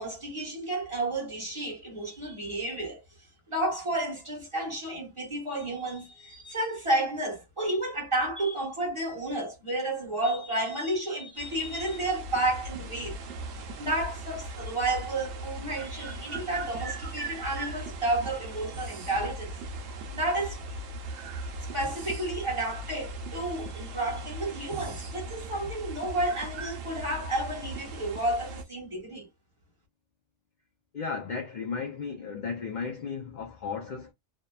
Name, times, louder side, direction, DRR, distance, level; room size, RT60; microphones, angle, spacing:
voice 1, 0.0-3.0 3.5-13.2 13.8-19.5 20.1-20.6 21.6-29.3, right 1 dB, 25° right, 1.2 m, -31 dB
sound 1, 11.4-28.6, right 1 dB, 90° right, 1.0 m, -39 dB
sound 2, 14.5-14.6 15.7-17.8 18.7-19.2 20.3-20.4 21.1-22.5 22.8-22.9 23.7-23.8 24.1-25.2 25.5-25.7 26.3-26.8, right 5 dB, 55° right, 0.8 m, -42 dB
voice 2, 30.9-34.1, left 5 dB, 55° left, 0.5 m, -35 dB
2.7 x 2.2 x 2.3 m
omnidirectional pair, 1.3 m